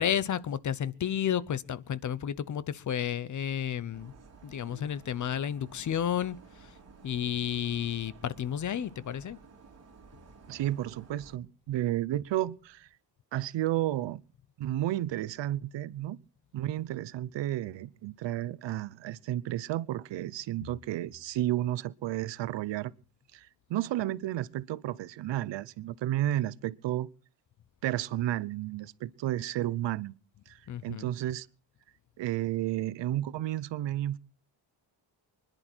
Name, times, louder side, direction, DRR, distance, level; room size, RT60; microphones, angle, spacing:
voice 1, 0.0-4.1 4.4-6.7 7.0-9.4 30.7-31.1, left 9 dB, 45° left, 0.7 m, -32 dB
sound 1, 3.9-11.4, right 5 dB, 35° right, 3.4 m, -54 dB
voice 2, 10.5-12.9 13.3-14.2 14.6-16.2 16.5-22.9 23.3-27.1 27.8-30.1 30.5-31.5 32.2-34.2, right 13 dB, 85° right, 0.8 m, -32 dB
24.5 x 11.0 x 4.4 m
wide cardioid pair, 165°, 42 cm